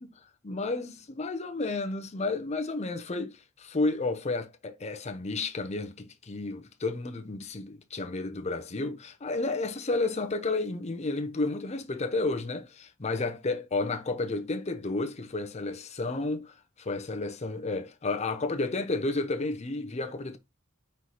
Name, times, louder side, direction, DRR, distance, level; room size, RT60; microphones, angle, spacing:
voice 1, 0.4-20.4, left 3 dB, 30° left, 0.6 m, -31 dB
4.4 x 3.9 x 3.0 m
head